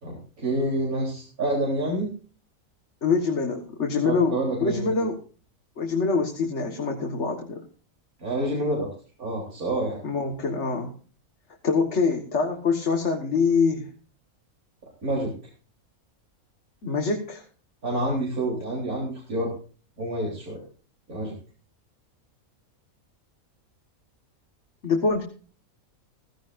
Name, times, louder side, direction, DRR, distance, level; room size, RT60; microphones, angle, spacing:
voice 1, 0.0-2.1 4.0-5.1 8.2-8.9 9.2-10.0 15.0-15.3 17.8-19.5 20.0-20.6 21.1-21.3, right 1 dB, 80° right, -3 dB, 4.1 m, -28 dB
voice 2, 3.0-5.2 5.8-7.6 10.0-10.9 11.6-13.9 16.8-17.4 24.8-25.2, left 4 dB, 55° left, 3 dB, 1.8 m, -25 dB
16.5 x 15.5 x 2.5 m, 0.39 s
omnidirectional pair, 1.5 m